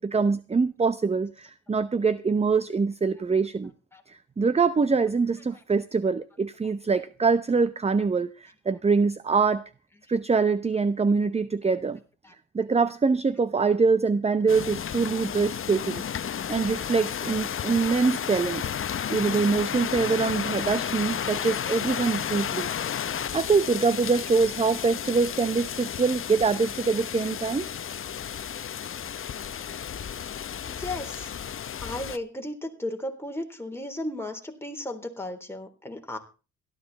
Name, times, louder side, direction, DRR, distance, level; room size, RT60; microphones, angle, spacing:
voice 1, 0.0-3.7 4.1-9.6 10.1-12.0 12.5-16.0 16.5-18.6 19.1-22.7 23.3-27.7, right 4 dB, 20° right, 0.8 m, -24 dB
sound 1, 14.5-32.2, left 8 dB, 45° left, 1.0 m, -32 dB
voice 2, 30.7-31.3 31.8-36.2, left 1 dB, 10° left, 3.8 m, -35 dB
17.0 x 13.0 x 4.1 m
cardioid pair, 90°, 30 cm